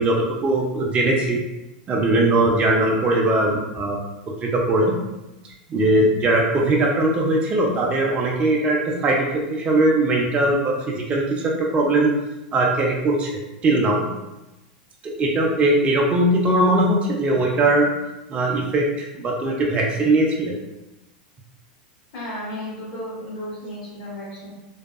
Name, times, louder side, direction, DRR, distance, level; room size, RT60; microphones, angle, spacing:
voice 1, 0.0-1.4 1.9-4.0 4.4-4.9 5.7-12.1 12.5-14.1 15.0-17.9 18.3-20.6, right 2 dB, 25° right, -1 dB, 0.4 m, -20 dB
voice 2, 22.1-24.5, left 1 dB, 60° left, -7 dB, 1.5 m, -33 dB
2.7 x 2.2 x 2.2 m, 1.0 s
hypercardioid pair, 115°, 5 cm